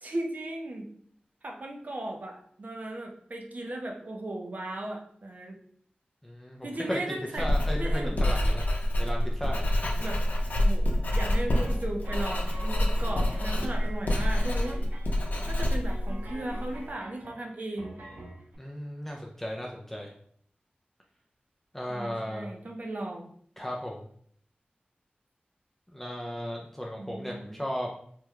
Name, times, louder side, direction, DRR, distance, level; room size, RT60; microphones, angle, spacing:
voice 1, 0.0-0.9 1.4-5.6 6.6-7.5 7.7-8.2 10.0-10.2 10.6-14.9 15.5-17.9 21.9-23.3 27.0-27.5, right 1 dB, 55° right, 1 dB, 0.6 m, -36 dB
voice 2, 6.2-8.7 9.0-9.7 18.6-20.1 21.7-22.5 23.6-24.1 25.9-27.9, equal, 10° left, -1 dB, 0.4 m, -35 dB
Writing, 7.4-16.8, left 1 dB, 60° left, 0.6 m, -27 dB
sound 1, 11.1-18.6, right 1 dB, 85° right, 0.9 m, -47 dB
3.5 x 2.2 x 3.0 m, 0.62 s
wide cardioid pair, 80°, 3 cm